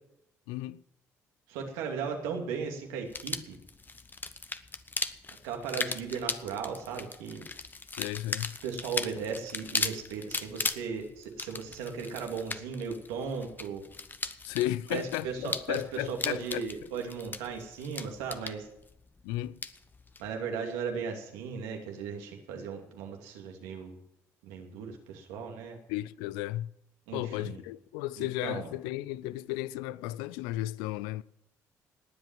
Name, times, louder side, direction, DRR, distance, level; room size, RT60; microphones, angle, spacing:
voice 1, 0.5-0.8 7.9-8.5 14.4-16.7 19.2-19.6 25.9-26.7 27.1-31.2, left 16 dB, 85° left, 0.5 m, -34 dB
voice 2, 1.5-3.6 5.4-7.4 8.6-13.8 14.9-18.7 20.2-24.0 24.4-25.8 27.1-27.6 28.2-28.7, right 6 dB, 90° right, 2.6 m, -37 dB
sound 1, 3.1-20.3, left 3 dB, 25° left, 1.0 m, -38 dB
19.5 x 7.8 x 7.6 m
supercardioid pair, 65°, 7 cm